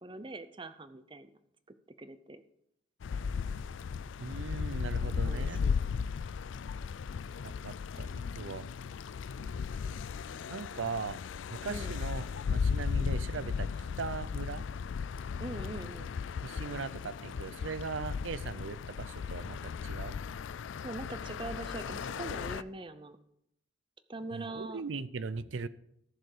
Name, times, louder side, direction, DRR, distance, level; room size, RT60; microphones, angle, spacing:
voice 1, 0.0-1.3 2.0-2.4 5.0-5.8 11.7-11.9 15.4-16.1 20.8-23.2 24.1-24.8, right 2 dB, 25° right, 12 dB, 0.6 m, -42 dB
sound 1, 3.0-22.6, left 6 dB, 80° left, 0.4 m, -36 dB
voice 2, 4.2-5.6 7.4-8.7 9.4-9.5 10.5-11.2 11.5-13.7 14.0-14.6 16.4-20.2 24.3-25.7, right 4 dB, 80° right, 16 dB, 0.6 m, -39 dB
14.0 x 6.8 x 4.9 m, 0.77 s
head